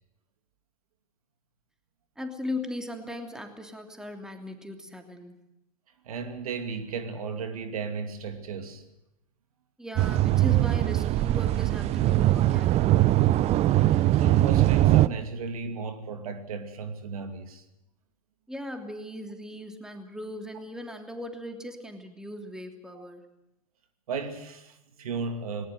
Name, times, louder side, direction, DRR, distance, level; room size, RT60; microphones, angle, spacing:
voice 1, 2.2-5.4 9.8-13.1 18.5-23.3, left 1 dB, 5° right, 6 dB, 3.0 m, -38 dB
voice 2, 6.0-8.8 13.8-17.6 22.9-23.1 24.1-25.7, right 5 dB, 70° right, 8 dB, 2.6 m, -35 dB
Under the Bay Farm Bridge, 10.0-15.1, right 14 dB, 35° right, 0.7 m, -21 dB
19.5 x 19.5 x 7.8 m, 0.88 s
hypercardioid pair, 100°, 19 cm